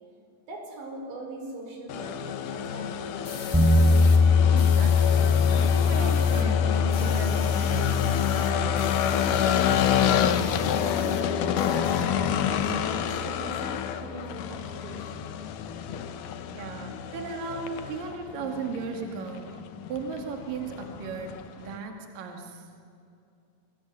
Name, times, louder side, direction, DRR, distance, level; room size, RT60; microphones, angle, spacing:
voice 1, 0.5-3.4 10.8-15.4, right 2 dB, 90° right, 1 dB, 7.5 m, -41 dB
sound 1, 1.9-21.8, left 9 dB, 65° left, 2.1 m, -29 dB
sound 2, 3.2-4.2 4.6-6.4 6.7-11.2 11.5-12.5, left 5 dB, 40° left, 3.7 m, -43 dB
sound 3, 3.5-13.6, left 4 dB, ahead, 3.8 m, -24 dB
voice 2, 4.5-9.1 16.5-19.6 19.9-22.7, right 4 dB, 55° right, 3 dB, 3.6 m, -37 dB
26.5 x 22.0 x 9.6 m, 2.5 s
omnidirectional pair, 4.9 m